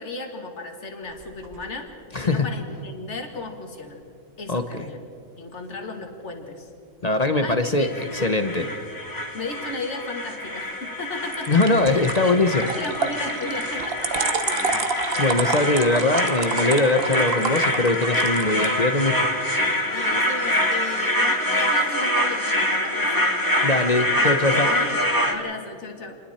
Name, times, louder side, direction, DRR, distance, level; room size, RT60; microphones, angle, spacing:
voice 1, 0.0-1.9 2.2-4.0 4.4-5.0 5.4-6.7 7.4-7.9 8.6-8.7 9.3-12.0 12.6-14.9 15.3-15.7 19.8-23.3 24.6-25.0 25.3-26.2, left 2 dB, 55° left, 4 dB, 2.3 m, -35 dB
sound 1, 1.1-1.7 11.3-18.7, right 4 dB, 45° right, 1.2 m, -30 dB
voice 2, 2.1-2.4 4.5-4.8 7.0-8.7 11.5-12.6 15.2-19.3 23.6-24.7, left 2 dB, 35° left, 8 dB, 0.8 m, -21 dB
sound 2, 7.8-25.3, left 1 dB, 15° left, 1.8 m, -25 dB
28.0 x 21.0 x 4.4 m, 2.5 s
omnidirectional pair, 1.5 m